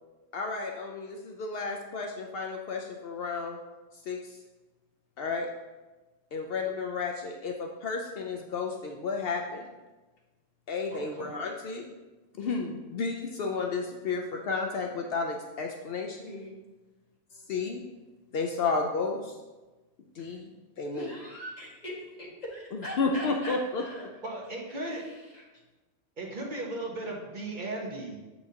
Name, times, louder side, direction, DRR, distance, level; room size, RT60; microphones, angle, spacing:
voice 1, 0.3-3.6 4.1-4.4 5.2-5.5 6.3-9.7 10.7-11.8 12.4-16.2 17.5-17.8 18.3-19.4 20.2-21.1 22.7-23.8, left 4 dB, 65° left, 2 dB, 0.8 m, -32 dB
voice 2, 10.9-11.4 24.2-25.0 26.2-28.2, right 2 dB, 50° right, -1 dB, 1.1 m, -36 dB
voice 3, 16.1-16.5 20.9-24.1 24.9-25.4, equal, 40° left, -6 dB, 1.8 m, -41 dB
7.8 x 5.7 x 2.8 m, 1.2 s
omnidirectional pair, 1.1 m